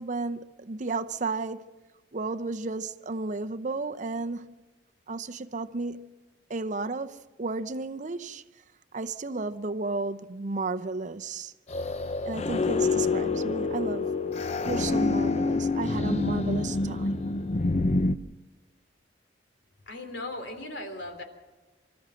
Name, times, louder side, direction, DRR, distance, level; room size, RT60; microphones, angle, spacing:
voice 1, 0.0-1.7 2.1-4.5 5.1-6.1 6.5-8.4 8.9-11.5 12.3-14.2 14.6-17.3, right 3 dB, 45° right, 0.7 m, -33 dB
sound 1, 11.7-18.2, left 3 dB, 35° left, 0.6 m, -27 dB
voice 2, 19.9-21.2, left 2 dB, 80° left, 3.2 m, -37 dB
25.5 x 14.0 x 7.7 m
head